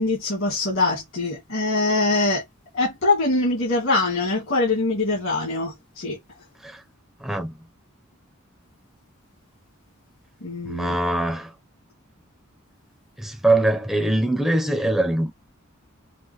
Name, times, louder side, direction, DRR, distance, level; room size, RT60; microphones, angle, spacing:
voice 1, 0.0-2.4 2.7-6.2 10.4-10.9, left 2 dB, 65° left, 2.2 m, -23 dB
voice 2, 7.2-7.6 10.6-11.5 13.2-15.3, right 1 dB, ahead, 0.9 m, -22 dB
5.7 x 2.5 x 3.2 m
head